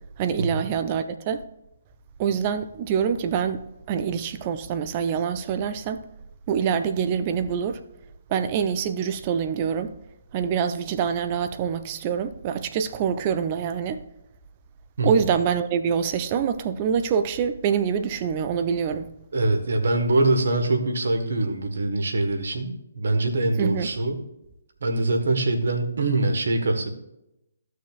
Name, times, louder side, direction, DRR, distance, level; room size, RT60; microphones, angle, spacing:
voice 1, 0.2-1.4 2.2-6.0 6.5-7.8 8.3-9.9 10.3-14.0 15.0-19.1 23.6-23.9, right 7 dB, 30° right, 0.6 m, -25 dB
voice 2, 19.3-24.1 24.8-26.9, right 2 dB, 55° right, 1.5 m, -23 dB
14.5 x 6.5 x 2.4 m
figure-of-eight pair, 135°, 0 cm